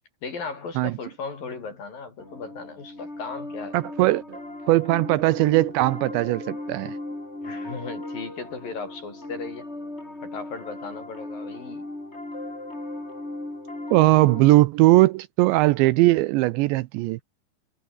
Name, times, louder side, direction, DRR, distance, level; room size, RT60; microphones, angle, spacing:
voice 1, 0.2-3.8 7.4-9.7 10.2-11.9, left 4 dB, 45° left, 7.2 m, -36 dB
Piano, 2.2-14.6, left 2 dB, 15° left, 5.6 m, -37 dB
voice 2, 3.7-4.4 4.7-7.0 13.9-17.2, right 19 dB, 80° right, 2.8 m, -19 dB
omnidirectional pair, 5.5 m